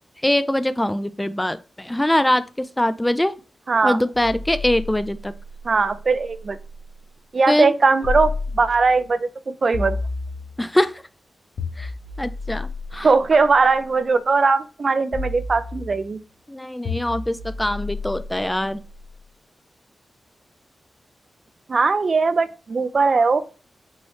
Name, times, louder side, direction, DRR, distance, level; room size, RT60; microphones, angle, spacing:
voice 1, 0.2-3.3 3.8-5.3 7.5-7.7 10.6-11.0 11.8-11.9 12.2-13.1 16.5-18.8, left 1 dB, 10° left, 13 dB, 0.4 m, -23 dB
voice 2, 3.7-4.0 5.6-6.6 7.3-9.3 9.6-10.0 13.0-16.2 21.7-23.4, right 4 dB, 55° right, 12 dB, 0.5 m, -19 dB
sound 1, 4.1-6.9 8.0-9.1 9.7-10.8 11.6-13.8 15.1-16.2 16.8-19.0, left 3 dB, 75° left, 1.1 m, -32 dB
5.5 x 3.1 x 3.1 m, 0.35 s
cardioid pair, 55°, 0 cm